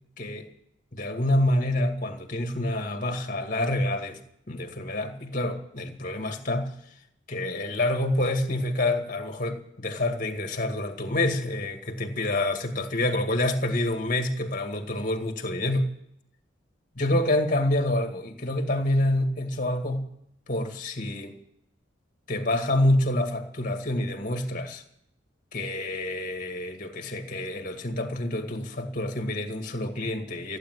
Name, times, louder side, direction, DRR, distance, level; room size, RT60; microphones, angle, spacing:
voice 1, 0.2-0.5 0.9-4.2 4.5-6.7 7.3-15.9 17.0-20.0 20.5-21.4 22.3-24.8 25.5-30.6, left 1 dB, 45° left, 2.2 m, -27 dB
15.5 x 9.1 x 9.5 m
head